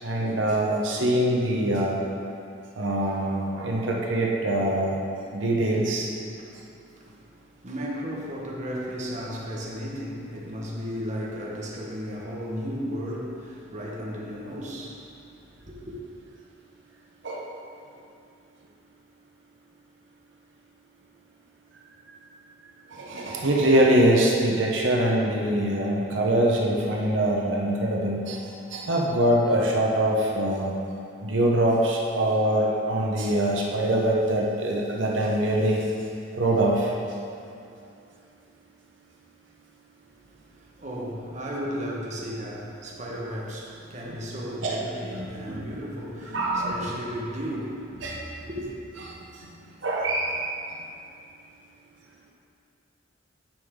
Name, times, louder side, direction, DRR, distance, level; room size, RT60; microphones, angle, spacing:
voice 1, 0.0-2.0 2.8-5.0 5.3-6.1 17.2-17.4 22.9-30.7 31.2-35.8 36.3-36.9 44.6-44.8 45.1-45.7 46.3-46.8 48.0-48.3 49.3-49.5 49.8-50.5, right 1 dB, 80° right, -2 dB, 0.9 m, -24 dB
voice 2, 6.9-7.3 7.6-15.0 15.6-16.0 40.5-48.7, equal, 40° right, -4 dB, 1.2 m, -34 dB
10.0 x 5.5 x 3.7 m, 2.6 s
head